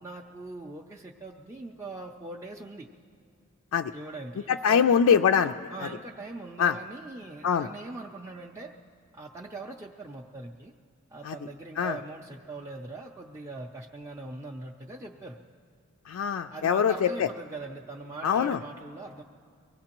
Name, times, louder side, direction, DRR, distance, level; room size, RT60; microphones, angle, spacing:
voice 1, 0.0-2.9 3.9-4.9 5.7-8.7 9.1-10.7 11.1-15.4 16.5-19.2, right 2 dB, 15° right, -1 dB, 0.4 m, -41 dB
voice 2, 4.5-5.5 6.6-6.8 7.4-7.7 11.2-11.3 11.8-12.0 16.1-17.3 18.2-18.6, left 7 dB, 75° left, 6 dB, 0.3 m, -23 dB
23.5 x 17.0 x 2.9 m, 2.4 s
head